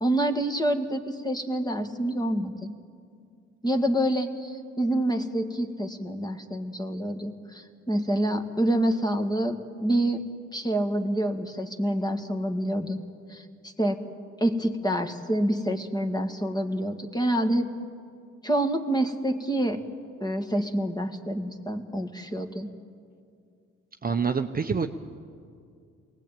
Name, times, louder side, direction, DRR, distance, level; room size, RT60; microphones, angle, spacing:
voice 1, 0.0-2.7 3.6-10.2 10.5-13.0 13.3-14.0 14.4-17.7 18.4-19.8 20.2-22.7, right 1 dB, 15° left, 6 dB, 1.8 m, -27 dB
voice 2, 24.0-24.9, right 5 dB, 30° right, 6 dB, 0.8 m, -26 dB
22.0 x 18.5 x 9.0 m, 2.3 s
cardioid pair, 90°, 30 cm